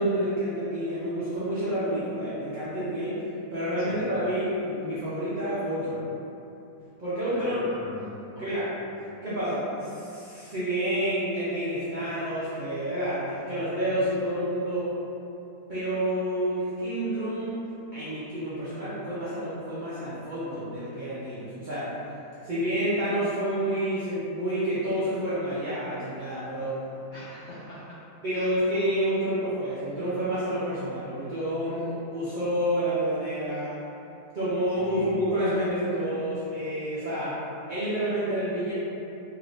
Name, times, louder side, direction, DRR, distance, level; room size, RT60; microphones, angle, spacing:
voice 1, 0.0-3.2 3.5-6.0 7.0-7.6 8.4-8.7 9.2-14.9 15.7-17.7 17.9-21.9 22.4-26.8 28.2-33.8 34.3-37.4 37.7-38.7, right 1 dB, 65° right, -12 dB, 0.4 m, -29 dB
voice 2, 7.3-8.0 8.5-8.7 27.1-27.8 28.3-28.5 34.8-35.2, equal, 65° left, -10 dB, 0.7 m, -42 dB
3.1 x 2.8 x 2.6 m, 2.9 s
omnidirectional pair, 1.7 m